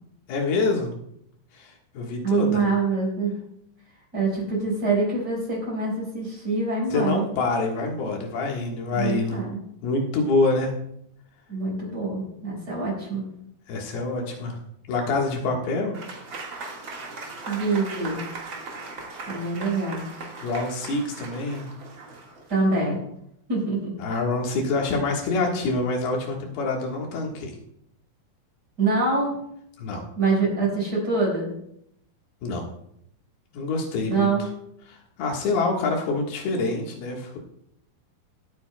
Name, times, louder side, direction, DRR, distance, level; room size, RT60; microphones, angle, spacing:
voice 1, 0.3-0.9 1.6-2.6 6.9-9.4 9.8-10.7 13.7-14.6 14.9-16.0 20.4-21.7 24.0-27.6 29.8-30.0 32.4-32.7 33.5-34.3 34.9-37.4, left 3 dB, 80° left, 1 dB, 3.5 m, -26 dB
voice 2, 2.2-3.4 4.1-7.3 9.0-9.6 11.5-13.3 17.5-18.2 19.3-20.1 22.5-23.0 23.5-23.9 28.8-29.4 30.2-31.5 34.1-34.5, right 3 dB, 25° right, -4 dB, 5.5 m, -25 dB
Applause / Crowd, 15.9-22.8, right 3 dB, 45° right, 1.8 m, -38 dB
24.5 x 8.5 x 2.3 m, 0.74 s
omnidirectional pair, 4.4 m